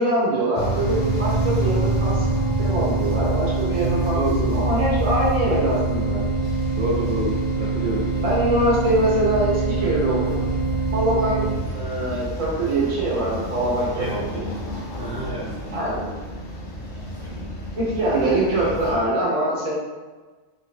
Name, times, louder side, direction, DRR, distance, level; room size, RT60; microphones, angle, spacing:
voice 1, 0.0-2.3 2.6-4.2 4.5-6.2 8.2-10.4 10.9-14.5 15.7-16.1 17.7-19.7, right 1 dB, 30° right, -6 dB, 1.1 m, -23 dB
sound 1, 0.5-19.0, equal, 45° left, 0.9 m, -29 dB
sound 2, 0.8-11.5, right 4 dB, 90° left, 1.6 m, -26 dB
voice 2, 3.8-4.6 6.8-8.1 13.9-14.5 15.0-15.5 17.2-17.4, right 1 dB, 55° right, -4 dB, 0.6 m, -28 dB
3.3 x 2.9 x 4.2 m, 1.3 s
omnidirectional pair, 1.4 m